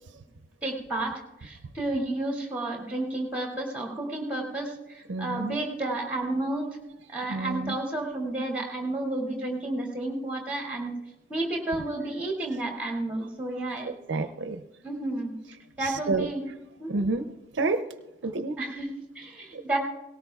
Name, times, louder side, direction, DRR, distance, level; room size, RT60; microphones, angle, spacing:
voice 1, 0.6-6.8 7.1-10.9 11.3-13.9 14.8-15.3 15.8-16.4 16.8-17.0 18.6-19.8, right 2 dB, 10° right, 0 dB, 2.3 m, -31 dB
voice 2, 5.1-5.6 7.3-7.8 13.9-14.6 15.8-16.3 16.9-17.3 17.5-17.8 18.2-18.6 19.5-19.6, right 3 dB, 75° right, 10 dB, 0.6 m, -29 dB
18.0 x 17.5 x 2.3 m, 0.95 s
head